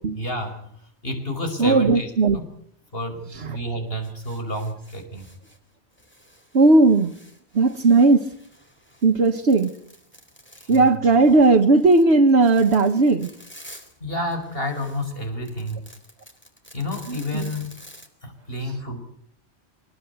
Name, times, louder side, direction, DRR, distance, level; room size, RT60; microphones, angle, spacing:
voice 1, 0.2-2.5 2.9-5.3 10.6-10.9 14.0-15.9 16.7-17.7 18.2-19.0, left 1 dB, 60° left, 5.5 m, -30 dB
voice 2, 1.6-2.4 3.3-3.6 6.5-7.1 7.5-8.3 9.0-9.7 10.7-13.3 17.1-17.5, right 3 dB, 70° right, 1.6 m, -17 dB
sound 1, 4.0-5.6 5.9-14.0 14.3-18.1, equal, 10° left, 3.6 m, -49 dB
25.0 x 21.0 x 8.2 m
omnidirectional pair, 1.1 m